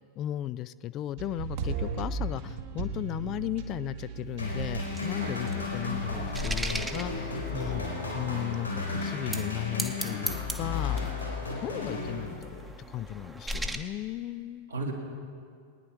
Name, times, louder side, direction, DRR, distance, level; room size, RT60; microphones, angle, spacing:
voice 1, 0.2-7.9 8.1-11.0 11.6-14.7, left 13 dB, 35° left, 16 dB, 0.3 m, -36 dB
sound 1, 1.2-4.9 5.4-5.5, right 4 dB, 50° right, 1.2 m, -35 dB
sound 2, 4.4-12.7, left 3 dB, 80° left, 3.7 m, -34 dB
sound 3, 4.5-7.8 8.4-8.5 9.2-9.5 9.8-11.2 11.9-13.8, right 1 dB, 5° right, 0.9 m, -37 dB
voice 2, 5.2-5.5 7.6-8.7 14.7-14.9, right 1 dB, 80° right, -2 dB, 2.4 m, -37 dB
22.0 x 9.8 x 4.6 m, 2.2 s
figure-of-eight pair, 90°, 0 cm